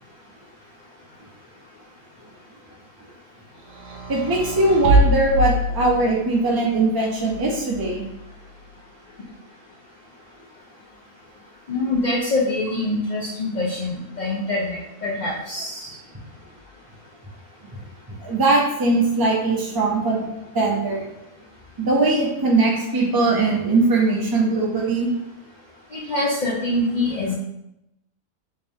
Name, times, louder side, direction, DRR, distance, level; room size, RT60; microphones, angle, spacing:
sound 1, 3.7-6.4 7.3-8.2, equal, 65° right, 0.9 m, -23 dB
voice 1, 4.1-8.0 18.1-20.2 20.5-21.1 21.8-25.1, right 2 dB, 30° right, -2 dB, 0.4 m, -20 dB
voice 2, 11.7-16.0 25.9-27.3, left 2 dB, 70° left, -6 dB, 0.4 m, -25 dB
3.6 x 2.7 x 3.4 m, 0.85 s
omnidirectional pair, 1.5 m